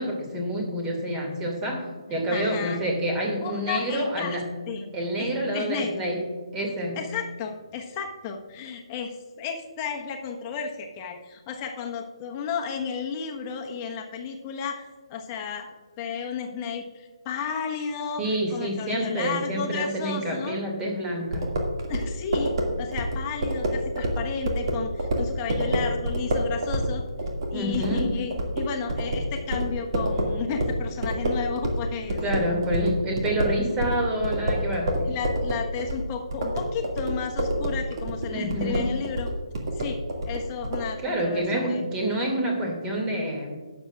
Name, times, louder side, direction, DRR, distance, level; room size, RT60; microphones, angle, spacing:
voice 1, 0.0-4.4 4.9-6.2 6.5-7.0 18.2-21.5 27.5-28.1 32.2-34.9 38.3-38.9 41.0-43.5, right 1 dB, 15° right, 1 dB, 2.4 m, -28 dB
voice 2, 2.3-2.8 3.4-4.4 4.7-4.9 5.2-5.9 7.0-15.7 16.0-20.6 21.9-27.0 27.5-32.2 35.0-39.3 39.7-40.0 40.3-41.8, left 6 dB, 25° left, 2 dB, 1.3 m, -33 dB
sound 1, 21.3-31.8 32.1-40.8, equal, 45° right, 2.1 m, -27 dB
19.5 x 7.3 x 2.4 m, 1.4 s
figure-of-eight pair, 145°, 3 cm